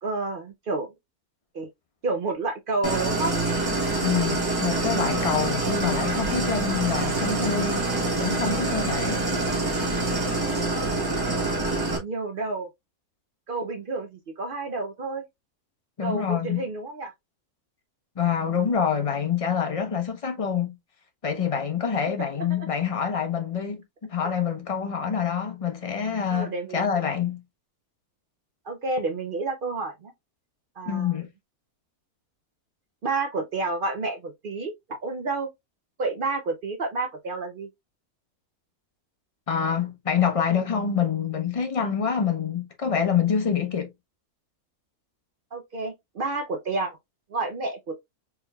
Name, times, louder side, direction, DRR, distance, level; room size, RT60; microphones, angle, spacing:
voice 1, 0.0-0.9 1.5-1.7 2.0-3.3 11.9-12.7 13.5-15.3 16.0-17.1 22.2-22.7 26.3-27.0 28.7-30.1 30.8-31.2 33.0-35.5 36.0-37.7 45.5-47.0 47.3-47.9, right 3 dB, 60° right, 0.5 m, -30 dB
Idling, 2.8-12.0, right 2 dB, 20° right, 0.7 m, -26 dB
voice 2, 4.0-7.8 8.1-9.2 16.0-16.6 18.2-20.7 21.2-27.4 30.9-31.3 39.5-43.9, left 7 dB, 35° left, 0.5 m, -26 dB
4.6 x 3.2 x 2.2 m
omnidirectional pair, 1.6 m